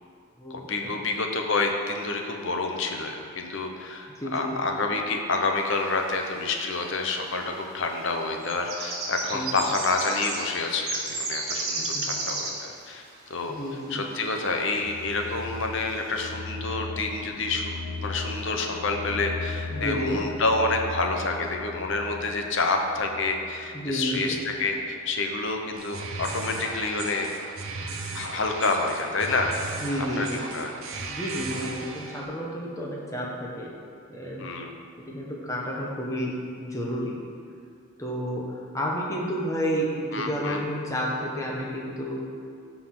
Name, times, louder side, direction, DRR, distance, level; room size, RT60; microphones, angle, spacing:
voice 1, 0.5-13.0 13.3-13.5 13.9-27.3 28.1-29.6 30.2-30.7 34.4-34.7 40.1-40.6, left 3 dB, 55° left, 3 dB, 0.8 m, -28 dB
voice 2, 4.2-4.6 9.3-9.5 11.9-12.0 13.5-14.0 19.7-20.2 23.7-24.4 29.8-30.4 31.1-33.7 34.1-34.5 35.0-37.2 38.0-42.2, equal, 15° left, -3 dB, 1.1 m, -31 dB
sound 1, 6.2-6.3 6.6-7.2 8.0-12.7 13.6-13.7 14.2-14.3 14.8-15.1 15.4-15.5 15.8-16.1, right 3 dB, 45° right, 1.8 m, -32 dB
sound 2, 14.8-24.7, left 3 dB, 85° left, 0.6 m, -37 dB
sound 3, 25.7-32.2, right 3 dB, 70° right, 0.9 m, -36 dB
13.0 x 4.7 x 3.8 m, 2.2 s
head